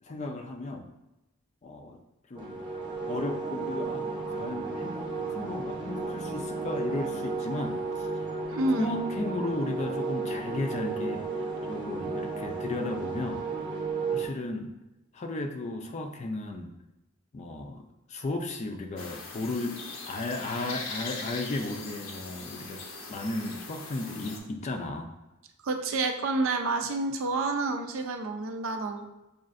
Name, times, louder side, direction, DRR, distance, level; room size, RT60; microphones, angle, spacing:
voice 1, 0.0-0.9 1.6-2.0 2.3-2.7 3.1-8.1 8.8-13.4 14.1-14.7 15.1-16.7 17.3-19.8 20.1-22.8 23.1-25.1, left 2 dB, 35° left, 5 dB, 0.4 m, -35 dB
sound 1, 2.3-14.2, right 3 dB, 25° right, 0.7 m, -33 dB
voice 2, 8.5-8.9 25.6-29.1, right 3 dB, 80° right, 5 dB, 0.5 m, -29 dB
sound 2, 19.0-24.4, left 3 dB, 80° left, 0.7 m, -40 dB
6.3 x 2.4 x 2.5 m, 0.98 s
head